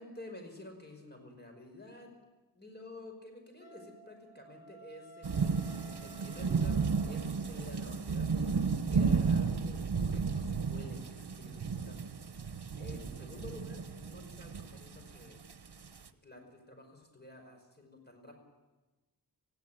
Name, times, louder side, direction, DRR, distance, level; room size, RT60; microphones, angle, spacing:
voice 1, 0.0-2.1 2.5-5.6 6.0-6.8 7.1-12.0 12.8-15.4 16.2-18.4, left 2 dB, 25° left, 3 dB, 5.4 m, -50 dB
Wind instrument woodwind instrument, 3.6-7.6, right 3 dB, 80° left, 2.2 m, -55 dB
sound 1, 5.2-16.1, right 5 dB, 75° right, 1.0 m, -33 dB
19.0 x 15.5 x 9.2 m, 1.2 s
wide cardioid pair, 65°, 40 cm